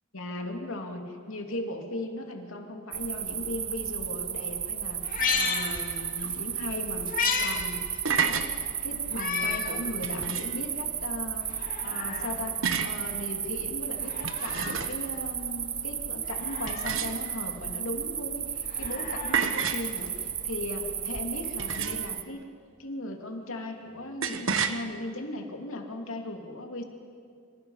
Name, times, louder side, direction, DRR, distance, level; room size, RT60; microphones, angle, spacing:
voice 1, 0.1-7.1 7.4-7.8 8.2-12.6 12.8-22.4 22.8-26.8, left 1 dB, 70° left, 3 dB, 2.7 m, -37 dB
sound 1, 2.9-22.2, right 8 dB, 25° right, 0.7 m, -34 dB
Meow, 5.0-6.4 6.7-7.6 7.9-8.0 9.1-9.8 10.3-10.4 11.4-12.4 13.9-14.9 16.3-17.1 18.6-20.2 21.4-21.5, left 5 dB, 40° left, 2.4 m, -33 dB
sound 2, 7.8-8.5 10.0-10.6 12.6-13.0 14.1-15.1 16.7-17.5 19.3-19.9 21.6-22.2 24.2-24.8, right 6 dB, 65° right, 1.2 m, -30 dB
26.0 x 26.0 x 5.7 m, 2.3 s
head